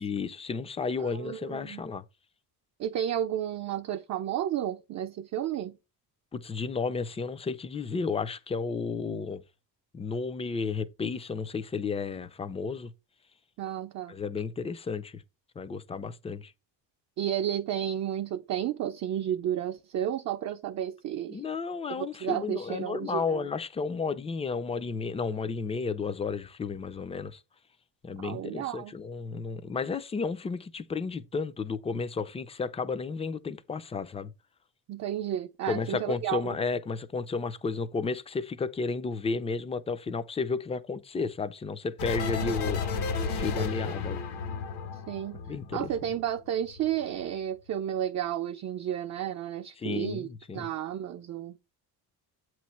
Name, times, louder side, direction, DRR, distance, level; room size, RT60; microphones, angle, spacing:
voice 1, 0.0-2.0 6.3-9.4 9.9-12.9 14.1-15.2 15.6-16.5 21.3-27.4 28.0-34.3 35.7-42.8 43.2-44.2 45.5-45.9 49.8-50.7, left 4 dB, 15° left, 0.4 m, -32 dB
voice 2, 1.0-1.8 2.8-5.7 13.6-14.1 17.2-21.4 21.9-23.5 28.2-28.9 34.9-36.6 42.2-42.5 44.9-45.4 45.7-50.3 50.5-51.6, right 10 dB, 45° right, 0.5 m, -32 dB
sound 1, 42.0-46.4 46.7-47.2, left 4 dB, 75° left, 1.7 m, -33 dB
8.2 x 3.1 x 5.6 m
cardioid pair, 155°, 40 cm